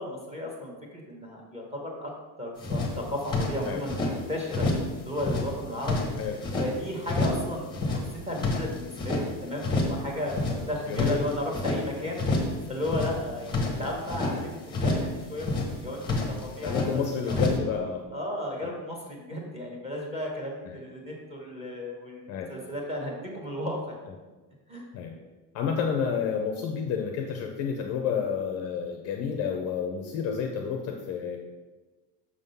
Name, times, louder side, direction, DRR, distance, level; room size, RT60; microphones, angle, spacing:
voice 1, 0.0-2.1 2.4-4.6 5.0-6.0 6.6-17.4 18.1-23.9 24.7-24.8, left 1 dB, 15° right, -2 dB, 1.0 m, -34 dB
sound 1, 2.6-4.1 4.5-4.9 5.2-6.7 7.0-7.5 7.7-9.2 9.6-10.0 10.3-11.8 12.2-12.6 12.8-14.4 14.7-15.1 15.4-16.9 17.3-17.6, left 2 dB, 10° left, 0.7 m, -28 dB
voice 2, 10.9-11.2 13.8-13.9 16.6-18.0 18.6-18.7 20.6-20.8 22.3-22.5 24.9-25.1 25.5-31.4, left 7 dB, 40° left, 3 dB, 0.5 m, -30 dB
6.3 x 3.7 x 5.4 m, 1.2 s
cardioid pair, 180°, 42 cm